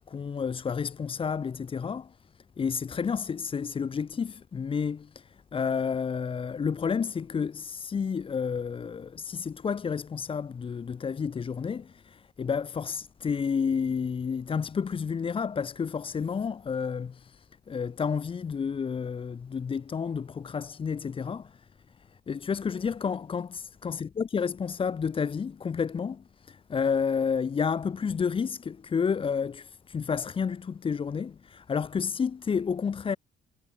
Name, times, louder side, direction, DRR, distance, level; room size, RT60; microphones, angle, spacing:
voice 1, 0.0-2.2 2.6-21.7 22.3-33.2, left 6 dB, 25° left, 0.4 m, -30 dB
cardioid pair, 90°, 20 cm